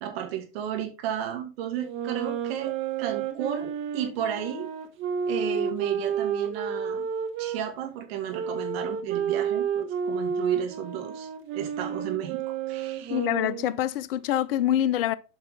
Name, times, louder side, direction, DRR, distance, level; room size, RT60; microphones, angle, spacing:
voice 1, 0.0-4.7 5.3-7.1 7.4-12.4 12.7-13.2, right 10 dB, 50° right, 2.3 m, -33 dB
sound 1, 1.8-7.6 8.3-13.8, right 7 dB, 30° right, 1.2 m, -30 dB
voice 2, 13.1-15.2, left 11 dB, 45° left, 0.6 m, -25 dB
8.6 x 5.5 x 3.6 m
figure-of-eight pair, 100°, 39 cm